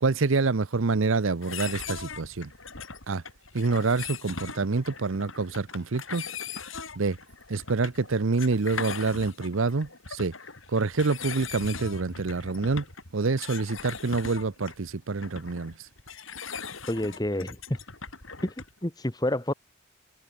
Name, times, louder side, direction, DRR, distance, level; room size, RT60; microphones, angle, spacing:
voice 1, 0.0-2.5 3.1-3.2 3.5-6.3 7.0-7.2 7.5-10.3 10.7-12.8 13.1-15.7, right 3 dB, 65° right, 0.7 m, -27 dB
sound 1, 1.4-18.8, left 5 dB, 65° left, 6.8 m, -40 dB
voice 2, 16.9-17.8 18.4-18.5 18.8-19.5, left 1 dB, 20° left, 1.3 m, -28 dB
head